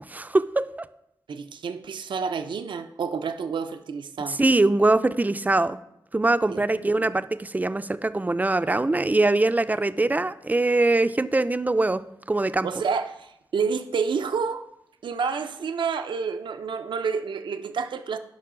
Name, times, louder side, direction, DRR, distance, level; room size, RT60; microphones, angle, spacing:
voice 1, 0.1-0.6 4.4-5.8 6.1-12.0 12.3-12.7, right 2 dB, 20° right, 12 dB, 0.4 m, -22 dB
voice 2, 1.3-4.4 6.5-6.7 6.9-7.1 12.6-14.7 15.0-18.2, right 5 dB, 80° right, 8 dB, 0.5 m, -29 dB
10.5 x 5.4 x 3.7 m, 0.80 s
cardioid pair, 65°, 8 cm